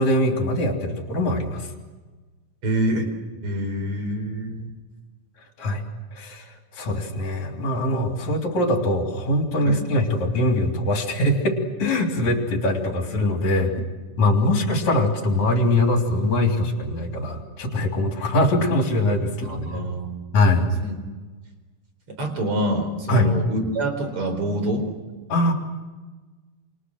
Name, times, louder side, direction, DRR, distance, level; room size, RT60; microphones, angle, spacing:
voice 1, 0.0-1.7 5.6-5.8 6.1-13.9 14.2-19.8 20.3-20.7 23.1-23.4 25.3-25.5, left 1 dB, 55° left, 2 dB, 4.5 m, -22 dB
voice 2, 2.6-3.1 3.4-4.7 9.6-9.8 14.4-14.7 19.4-20.2 20.8-21.0 22.1-24.9, right 1 dB, 40° right, 5 dB, 5.0 m, -26 dB
28.0 x 27.5 x 6.5 m, 1.3 s
omnidirectional pair, 4.0 m